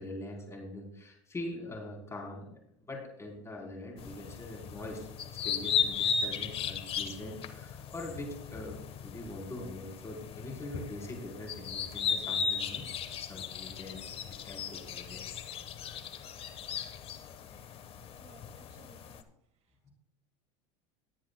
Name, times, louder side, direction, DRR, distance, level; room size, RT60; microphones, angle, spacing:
voice 1, 0.0-15.2 19.9-20.0, left 1 dB, 20° left, 0 dB, 3.9 m, -43 dB
sound 1, 4.0-19.2, left 7 dB, 35° left, 1.2 m, -36 dB
voice 2, 18.2-19.2, right 5 dB, 40° right, 5 dB, 1.9 m, -59 dB
20.5 x 9.8 x 2.3 m, 0.75 s
supercardioid pair, 110°, 16 cm